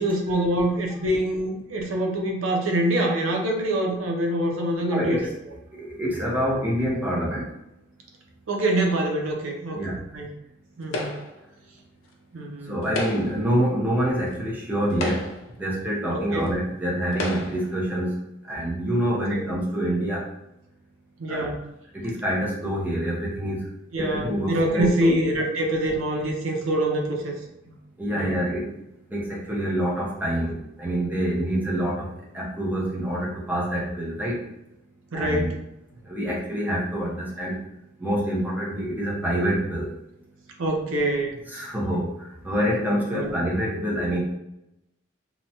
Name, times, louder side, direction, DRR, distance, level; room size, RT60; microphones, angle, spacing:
voice 1, 0.0-5.3 8.5-9.8 10.1-10.3 10.8-11.1 12.3-12.8 16.1-16.5 19.3-19.4 21.2-21.6 23.9-27.3 28.2-28.4 35.1-35.5 40.6-41.4 43.1-43.4, right 1 dB, 85° right, 1 dB, 0.6 m, -25 dB
voice 2, 4.9-5.3 5.7-7.5 9.7-10.0 12.6-15.3 15.6-18.2 18.5-20.2 21.3-21.5 21.9-23.7 23.9-25.1 28.0-28.7 29.1-34.4 35.1-35.5 36.0-37.6 38.0-39.9 41.5-44.2, equal, 10° right, -5 dB, 0.7 m, -26 dB
sound 1, 10.9-11.5 12.8-13.5 14.3-14.4 14.9-15.6 16.5-16.6 17.1-17.7, left 1 dB, 85° left, 0.5 m, -31 dB
3.0 x 2.1 x 2.7 m, 0.86 s
head